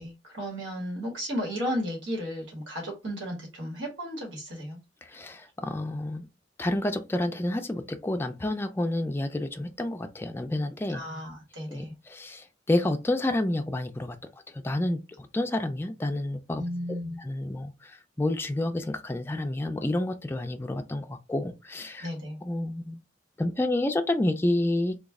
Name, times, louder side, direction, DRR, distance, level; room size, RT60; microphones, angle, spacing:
voice 1, 0.0-4.8 10.9-11.9 16.5-17.2 22.0-22.4, equal, 80° right, 1.5 m, -34 dB
voice 2, 5.0-6.3 6.6-11.0 11.7-14.2 14.5-22.1 22.4-23.0 23.4-25.0, left 1 dB, 15° left, 0.4 m, -29 dB
3.1 x 2.3 x 3.5 m
head